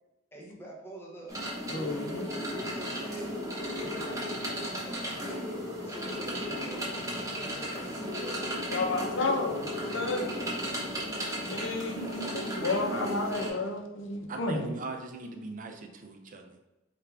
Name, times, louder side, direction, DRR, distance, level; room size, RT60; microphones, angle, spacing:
voice 1, 0.3-9.4, right 2 dB, 10° left, -2 dB, 0.7 m, -47 dB
sound 1, 1.3-13.5, equal, 15° right, 1.0 m, -35 dB
voice 2, 1.7-2.3 8.7-10.5 11.5-14.7, left 2 dB, 65° left, 2 dB, 0.7 m, -32 dB
voice 3, 14.3-16.6, right 3 dB, 40° right, 4 dB, 0.5 m, -40 dB
4.6 x 2.5 x 3.3 m, 1.0 s
head